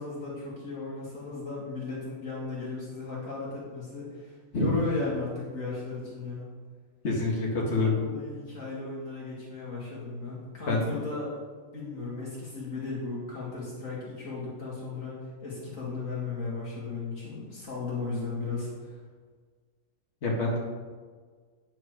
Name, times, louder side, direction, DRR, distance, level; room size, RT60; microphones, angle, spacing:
voice 1, 0.0-6.5 7.5-11.3 11.7-19.0, left 3 dB, 65° left, -7 dB, 2.6 m, -36 dB
voice 2, 7.0-8.0 10.7-10.9 20.2-20.6, left 2 dB, 50° left, -4 dB, 2.0 m, -26 dB
9.5 x 6.0 x 6.4 m, 1.5 s
omnidirectional pair, 1.5 m